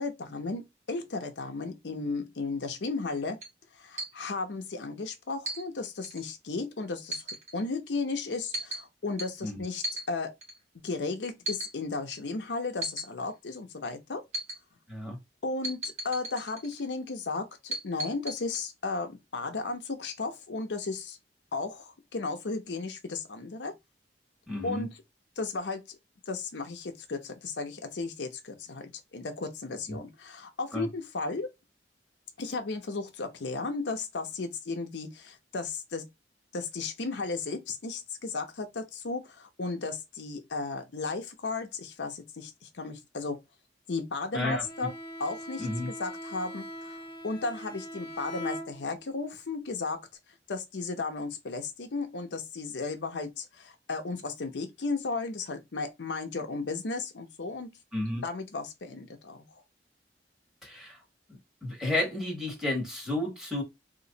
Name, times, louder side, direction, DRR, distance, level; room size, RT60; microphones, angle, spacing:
voice 1, 0.0-3.4 3.8-7.2 7.5-10.3 10.8-14.2 15.4-21.2 21.5-23.7 24.6-25.0 25.4-26.0 26.3-31.5 32.4-36.1 36.5-43.4 43.9-44.9 45.2-50.0 50.5-57.7 58.2-59.4, left 3 dB, 80° left, 0.7 m, -34 dB
sound 1, 3.4-3.5 4.0-4.1 5.5-5.6 6.0-6.2 7.1-7.5 8.5-8.8 9.2-9.3 9.8-10.1 10.4-10.6 11.5-11.7 12.1-12.2 12.8-13.1 14.3-14.6 15.6-16.9 17.7-18.6, right 1 dB, 40° right, 1.2 m, -35 dB
voice 2, 24.5-24.9 29.9-30.0 30.7-30.9 44.3-44.9 45.6-45.9 57.9-58.2 60.6-61.0 61.3-63.6, left 1 dB, 5° right, 1.4 m, -32 dB
Bowed string instrument, 44.6-49.2, equal, 30° left, 0.8 m, -41 dB
3.0 x 2.5 x 3.9 m
head